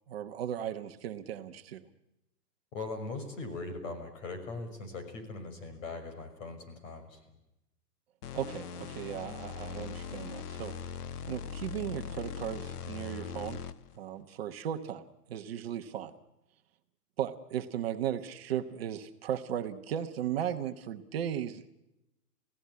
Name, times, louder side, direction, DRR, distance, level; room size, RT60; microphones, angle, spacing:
voice 1, 0.1-1.8 8.3-10.7 11.3-13.6 14.0-16.1 17.2-21.7, right 10 dB, 40° right, 7 dB, 1.1 m, -36 dB
voice 2, 2.7-7.2, left 3 dB, 50° left, 7 dB, 6.0 m, -40 dB
sound 1, 8.2-14.0, left 7 dB, 70° left, 1.2 m, -40 dB
28.0 x 16.5 x 9.5 m, 0.92 s
hypercardioid pair, 170°, 48 cm